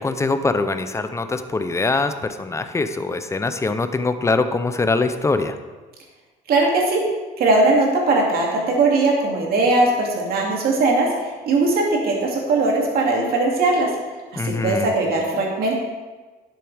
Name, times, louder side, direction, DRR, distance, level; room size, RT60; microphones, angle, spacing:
voice 1, 0.0-5.6 14.4-14.9, left 3 dB, 15° left, 10 dB, 0.6 m, -23 dB
voice 2, 6.5-7.0 7.4-13.9 14.4-15.8, right 2 dB, 65° right, -1 dB, 2.6 m, -19 dB
11.0 x 7.8 x 3.5 m, 1.3 s
cardioid pair, 110°, 17 cm